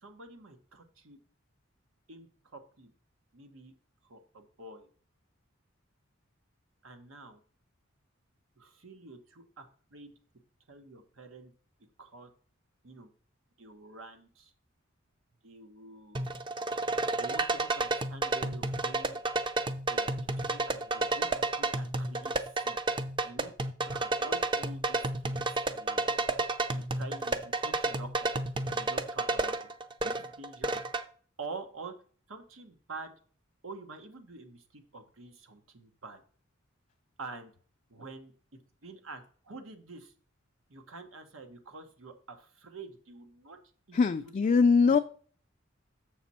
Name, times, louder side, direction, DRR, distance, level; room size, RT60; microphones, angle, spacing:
voice 1, 0.0-1.2 2.1-2.9 3.3-3.7 4.0-4.9 6.8-7.4 8.6-10.1 10.7-11.5 12.0-12.3 12.8-13.1 13.6-14.5 15.4-16.3 17.2-19.2 19.9-20.1 20.4-21.3 21.5-22.3 22.6-22.8 23.2-23.5 23.8-26.2 26.7-28.3 28.7-29.6 30.0-30.8 31.4-31.9 32.3-33.1 33.6-36.2 37.2-37.5 37.9-38.3 38.8-40.1 40.7-43.6 43.9-44.4 44.9-45.0, right 3 dB, 90° right, 7 dB, 1.2 m, -47 dB
sound 1, 16.2-31.0, right 2 dB, 25° right, 0.5 m, -31 dB
voice 2, 43.9-45.0, left 5 dB, 40° left, 6 dB, 0.3 m, -22 dB
7.3 x 6.1 x 4.2 m, 0.44 s
head